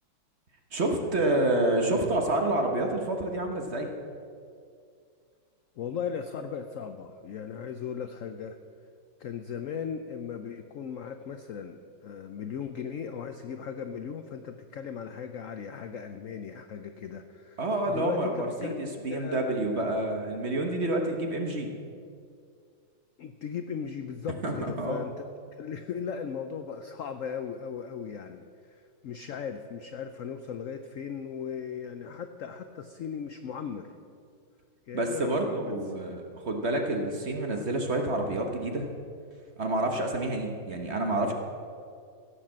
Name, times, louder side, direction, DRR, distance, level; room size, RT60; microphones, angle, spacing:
voice 1, 0.7-3.9 17.6-21.7 24.4-25.0 34.9-38.9 39.6-41.3, right 1 dB, 40° right, 3 dB, 1.2 m, -28 dB
voice 2, 5.8-8.6 9.2-18.7 19.1-19.8 23.2-25.3 25.6-33.9 34.9-35.7 36.1-36.2, left 7 dB, 80° left, 8 dB, 0.7 m, -37 dB
15.5 x 6.7 x 7.4 m, 2.3 s
omnidirectional pair, 2.1 m